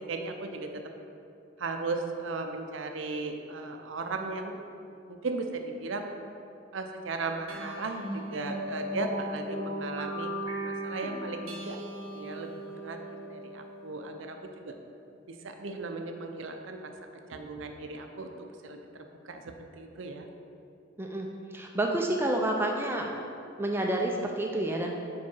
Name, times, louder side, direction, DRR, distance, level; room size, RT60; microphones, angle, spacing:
voice 1, 0.1-0.8 1.6-4.6 5.1-6.1 6.7-11.8 12.1-12.5 12.8-14.4 14.6-14.7 15.3-16.9 17.3-20.3, right 3 dB, 75° right, 5 dB, 0.5 m, -36 dB
sound 1, 7.5-14.3, right 1 dB, 90° right, 0.9 m, -37 dB
voice 2, 21.5-23.1 23.6-24.9, right 1 dB, 10° right, 1 dB, 0.4 m, -29 dB
5.2 x 4.7 x 5.5 m, 2.6 s
head